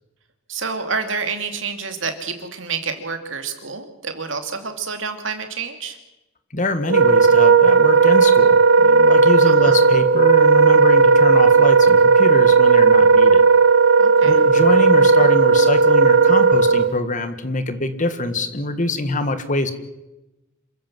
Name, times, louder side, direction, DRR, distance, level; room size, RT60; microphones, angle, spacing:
voice 1, 0.5-6.0 9.5-9.8 14.0-14.5, right 5 dB, 65° right, 6 dB, 2.7 m, -28 dB
voice 2, 6.5-13.4 14.2-19.7, left 2 dB, 40° left, 10 dB, 1.7 m, -24 dB
Wind instrument woodwind instrument, 6.8-16.9, right 4 dB, 90° right, 0.8 m, -13 dB
27.5 x 15.0 x 7.6 m, 0.98 s
head